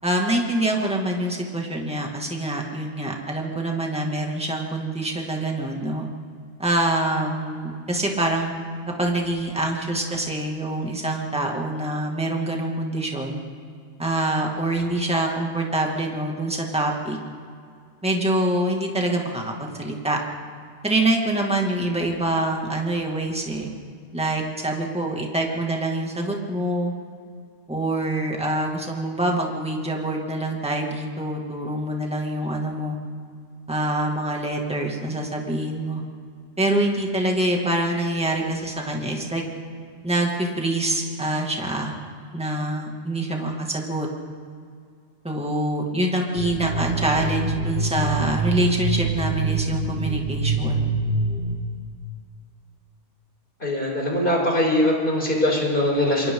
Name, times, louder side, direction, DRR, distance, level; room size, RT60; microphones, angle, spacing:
voice 1, 0.0-6.1 6.6-8.5 8.9-13.4 14.0-17.2 18.0-20.2 20.8-23.7 24.1-26.9 27.7-33.0 33.7-36.0 36.6-39.4 40.0-41.9 42.3-44.1 45.2-50.8, right 1 dB, 5° right, 0 dB, 2.3 m, -25 dB
sound 1, 46.4-51.6, right 2 dB, 55° right, 1.9 m, -25 dB
voice 2, 53.6-56.3, left 1 dB, 45° left, -1 dB, 5.0 m, -21 dB
27.0 x 24.0 x 3.9 m, 2.2 s
omnidirectional pair, 1.3 m